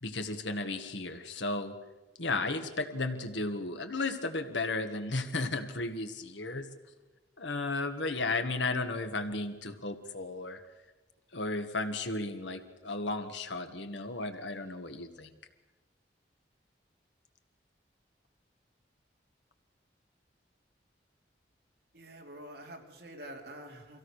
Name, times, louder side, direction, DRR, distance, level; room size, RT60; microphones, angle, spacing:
voice 1, 0.0-1.8 2.2-6.7 7.4-10.6 11.3-15.3, left 2 dB, 90° left, 7 dB, 1.7 m, -34 dB
voice 2, 21.9-24.0, right 1 dB, 60° right, 1 dB, 3.1 m, -47 dB
24.0 x 16.5 x 6.5 m, 1.2 s
head